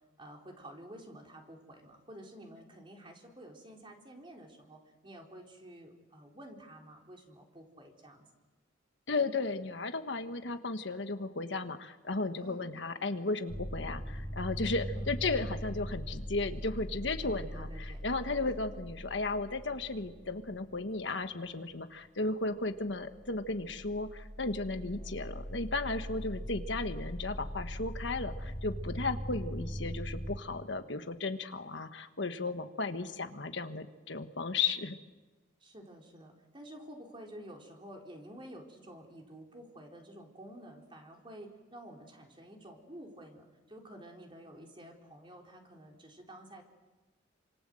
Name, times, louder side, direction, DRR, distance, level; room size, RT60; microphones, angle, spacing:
voice 1, 0.2-8.2 12.4-12.6 14.9-15.3 17.2-18.0 24.9-25.2 32.8-33.1 35.6-46.6, right 1 dB, 25° right, 1 dB, 4.1 m, -51 dB
voice 2, 9.1-35.0, left 3 dB, 65° left, 8 dB, 1.5 m, -35 dB
sound 1, 13.5-21.0 22.9-30.4, equal, 10° left, 3.3 m, -41 dB
29.0 x 26.5 x 7.8 m, 1.2 s
head